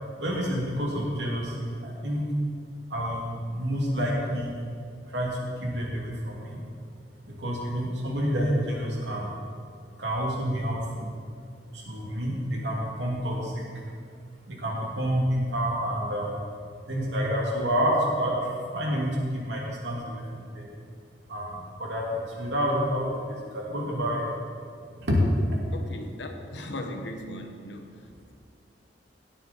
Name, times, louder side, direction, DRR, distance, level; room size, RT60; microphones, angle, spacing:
voice 1, 0.2-2.2 2.9-4.5 5.1-5.3 5.6-6.6 7.4-9.3 10.0-11.1 11.7-13.6 14.5-16.3 16.9-18.4 18.7-19.1 19.4-20.7 21.3-21.5 21.8-23.1 23.5-24.3 25.1-25.2, equal, 75° right, -3 dB, 2.6 m, -28 dB
voice 2, 25.7-28.3, left 1 dB, 80° left, 4 dB, 1.4 m, -38 dB
17.5 x 9.2 x 4.3 m, 2.2 s
head